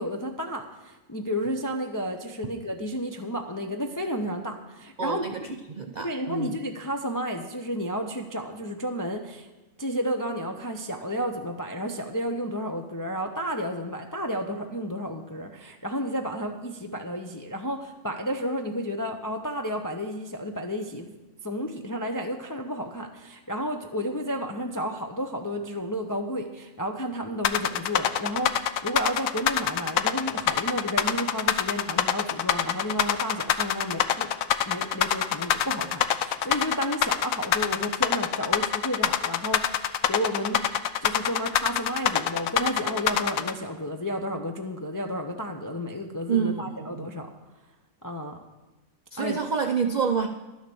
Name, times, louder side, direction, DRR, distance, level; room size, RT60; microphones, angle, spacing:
voice 1, 0.0-5.2 6.0-9.5 9.8-21.1 21.4-34.3 34.7-40.7 41.0-47.3 48.0-48.4 49.2-49.4, equal, 30° left, 3 dB, 0.3 m, -32 dB
voice 2, 5.0-5.4 5.7-6.6 46.3-47.1 49.1-50.3, right 6 dB, 60° right, 4 dB, 0.4 m, -28 dB
sound 1, 27.4-43.5, left 10 dB, 75° left, 1.0 m, -24 dB
12.0 x 6.5 x 6.9 m, 1.1 s
omnidirectional pair, 1.4 m